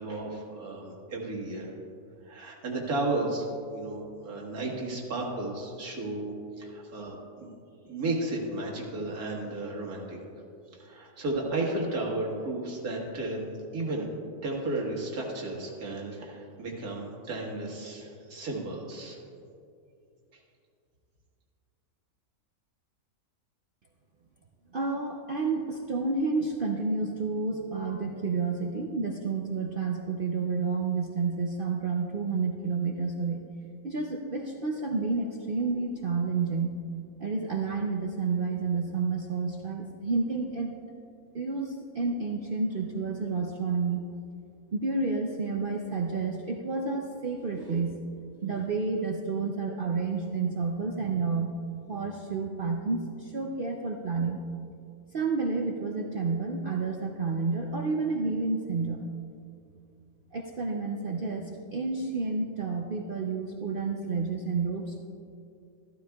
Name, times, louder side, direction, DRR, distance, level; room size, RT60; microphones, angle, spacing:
voice 1, 0.0-1.7 2.2-3.5 3.7-7.5 7.8-10.3 10.7-13.4 13.7-14.1 14.4-19.2, right 2 dB, 75° right, -2 dB, 2.1 m, -33 dB
voice 2, 24.7-33.4 33.8-36.8 37.2-40.7 41.3-44.1 44.7-48.0 48.4-51.5 51.9-54.4 55.1-59.0 60.3-65.0, right 4 dB, 55° right, 1 dB, 0.6 m, -30 dB
14.5 x 13.0 x 2.3 m, 2.5 s
omnidirectional pair, 1.6 m